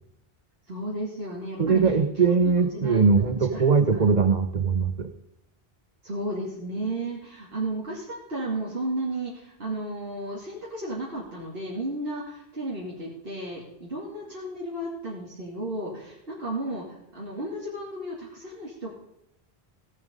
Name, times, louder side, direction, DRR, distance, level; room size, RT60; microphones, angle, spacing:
voice 1, 0.7-3.0 3.5-3.6 3.9-4.1 6.0-18.9, right 1 dB, 70° right, -6 dB, 2.9 m, -34 dB
voice 2, 1.6-5.1, right 5 dB, 45° right, 9 dB, 1.0 m, -21 dB
17.0 x 7.4 x 5.3 m, 0.81 s
omnidirectional pair, 1.0 m